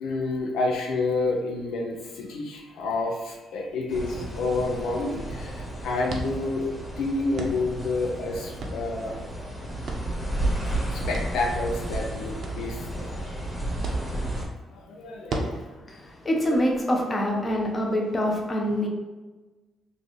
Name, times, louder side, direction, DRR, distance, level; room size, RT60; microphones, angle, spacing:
voice 1, 0.0-6.7 7.0-9.2 10.9-13.1 14.7-15.6, left 3 dB, 85° left, 0 dB, 0.5 m, -29 dB
sound 1, 3.5-17.6, right 2 dB, 60° right, 0.6 m, -40 dB
sound 2, 3.9-14.4, right 1 dB, 10° left, 1.2 m, -32 dB
voice 2, 15.9-18.9, equal, 30° left, 0 dB, 0.8 m, -25 dB
3.7 x 2.5 x 3.1 m, 1.2 s
cardioid pair, 90°, 0 cm